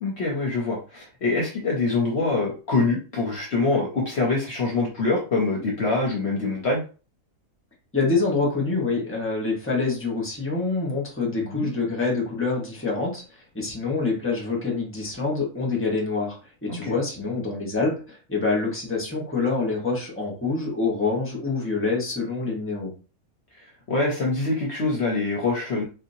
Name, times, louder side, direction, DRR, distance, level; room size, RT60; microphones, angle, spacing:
voice 1, 0.0-6.8 11.4-11.7 16.7-16.9 23.9-25.8, left 3 dB, 55° left, -1 dB, 1.0 m, -24 dB
voice 2, 7.9-22.9, left 3 dB, 10° left, -2 dB, 1.2 m, -26 dB
3.9 x 2.8 x 2.7 m, 0.35 s
omnidirectional pair, 1.5 m